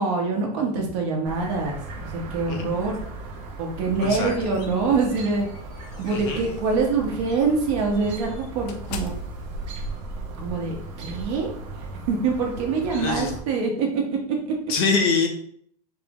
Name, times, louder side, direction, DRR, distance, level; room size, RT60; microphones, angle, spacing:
voice 1, 0.0-3.0 3.6-5.5 6.0-9.1 10.4-11.5 12.1-14.2 14.4-14.5, right 4 dB, 45° right, 0 dB, 0.9 m, -25 dB
Chirp tweet, 1.3-13.4, right 2 dB, 30° right, 0.6 m, -38 dB
sound 1, 4.0-6.7 7.2-7.4 7.9-12.1, right 1 dB, 90° left, 0.6 m, -39 dB
voice 2, 4.0-4.4 6.1-6.4 12.9-13.3 14.7-15.3, left 4 dB, 40° left, 4 dB, 0.5 m, -24 dB
4.3 x 2.0 x 3.5 m, 0.63 s
supercardioid pair, 175°, 21 cm